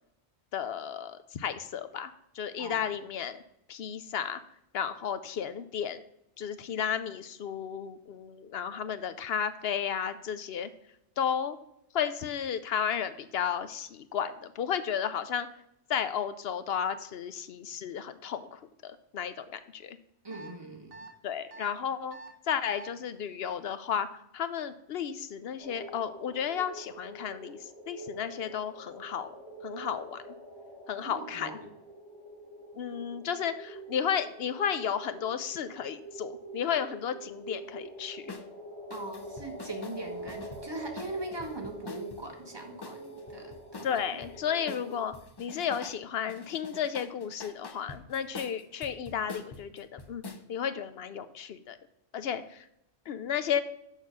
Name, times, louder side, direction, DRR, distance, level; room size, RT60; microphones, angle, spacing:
voice 1, 0.5-3.4 3.7-4.4 4.7-6.0 6.4-10.7 11.2-11.6 11.9-15.5 15.9-20.0 21.2-22.2 22.5-24.1 24.3-27.6 27.9-29.4 29.6-30.2 30.9-31.5 32.8-38.3 43.8-45.1 45.4-51.8 52.1-52.6 53.1-53.6, left 8 dB, 65° left, 12 dB, 0.8 m, -33 dB
voice 2, 20.2-20.9 31.0-31.7 38.9-44.2, right 2 dB, 20° right, 2 dB, 1.1 m, -40 dB
sound 1, 20.3-20.5 20.9-21.1 21.5-21.7 22.1-22.3 22.7-22.9, right 3 dB, 50° right, 1.5 m, -46 dB
sound 2, 25.6-45.0, right 1 dB, 20° left, 3.8 m, -46 dB
sound 3, 38.3-38.5 38.9-42.2 42.8-44.3 44.7-46.0 46.3-50.4, left 4 dB, 40° left, 0.4 m, -45 dB
6.5 x 5.4 x 6.2 m, 0.78 s
omnidirectional pair, 1.2 m